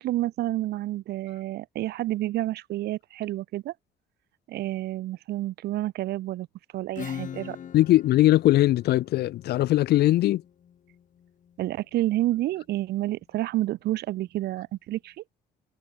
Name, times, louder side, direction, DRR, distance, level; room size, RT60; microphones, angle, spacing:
voice 1, 0.0-3.7 4.5-6.5 6.7-7.6 11.6-15.2, right 15 dB, 75° right, 5.1 m, -29 dB
Acoustic guitar / Strum, 7.0-12.3, left 9 dB, 50° left, 7.4 m, -42 dB
voice 2, 7.7-10.4, left 15 dB, 75° left, 2.3 m, -20 dB
cardioid pair, 110°, 17 cm